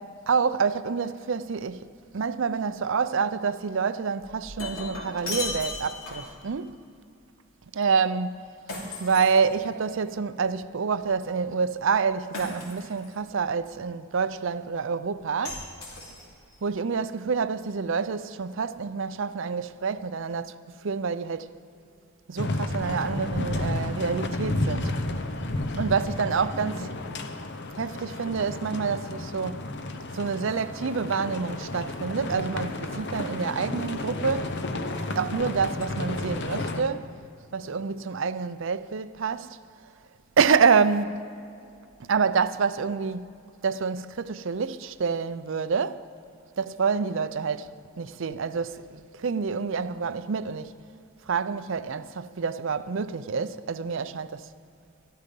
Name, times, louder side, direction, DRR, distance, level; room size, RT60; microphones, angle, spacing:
voice 1, 0.0-6.8 7.7-8.5 9.0-15.7 16.6-21.5 22.3-24.9 25.7-26.9 27.8-29.7 30.1-34.6 35.1-37.1 37.5-39.6 40.4-41.2 42.0-43.4 43.6-46.0 46.6-50.7 51.3-54.5, right 5 dB, 60° right, 0.5 m, -27 dB
Shatter, 4.2-6.4 8.7-10.0 12.3-13.1 15.4-16.5, left 3 dB, 75° left, 2.9 m, -36 dB
sound 1, 22.4-36.8, left 2 dB, 55° left, 0.8 m, -32 dB
13.0 x 12.5 x 5.3 m
head